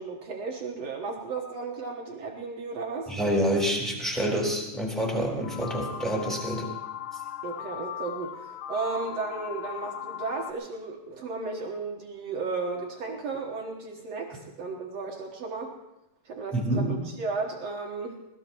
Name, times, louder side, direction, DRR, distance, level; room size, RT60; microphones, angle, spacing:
voice 1, 0.0-3.1 7.4-15.7 16.2-18.2, right 4 dB, 75° right, 0 dB, 1.5 m, -34 dB
voice 2, 3.1-6.7 16.5-16.9, equal, ahead, -1 dB, 3.3 m, -27 dB
sound 1, 5.4-10.5, left 10 dB, 85° left, 3.1 m, -38 dB
21.5 x 19.5 x 3.0 m, 0.94 s
omnidirectional pair, 5.0 m